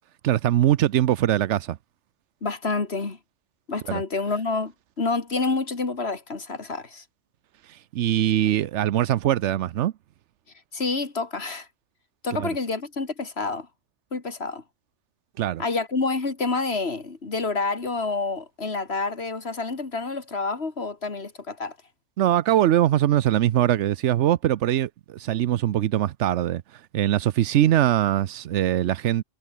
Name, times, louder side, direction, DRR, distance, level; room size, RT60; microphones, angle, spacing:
voice 1, 0.2-1.8 3.9-4.0 7.7-9.9 12.3-12.5 15.4-15.6 22.2-26.6 26.9-29.2, right 12 dB, 85° right, 1.0 m, -22 dB
voice 2, 2.4-3.2 3.7-7.0 10.7-11.7 12.2-13.7 14.1-14.6 15.6-21.8, left 3 dB, 65° left, 2.8 m, -28 dB
omnidirectional pair, 1.2 m